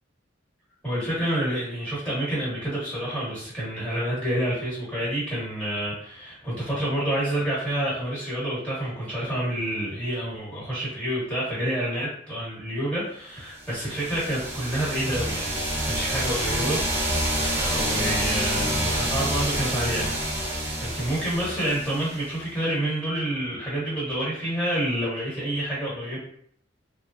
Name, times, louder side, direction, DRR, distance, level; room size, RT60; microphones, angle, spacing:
voice 1, 0.8-17.0 17.6-26.2, right 1 dB, 5° left, -7 dB, 1.2 m, -28 dB
sound 1, 13.7-22.4, right 1 dB, 10° right, 0.4 m, -28 dB
3.2 x 2.0 x 2.6 m, 0.64 s
head